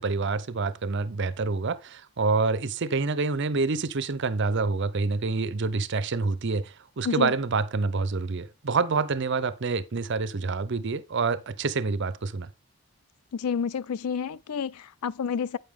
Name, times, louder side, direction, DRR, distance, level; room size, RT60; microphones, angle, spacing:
voice 1, 0.0-12.5, right 4 dB, 55° right, 0.6 m, -27 dB
voice 2, 13.3-15.6, left 6 dB, 90° left, 0.4 m, -29 dB
9.3 x 6.6 x 3.6 m
head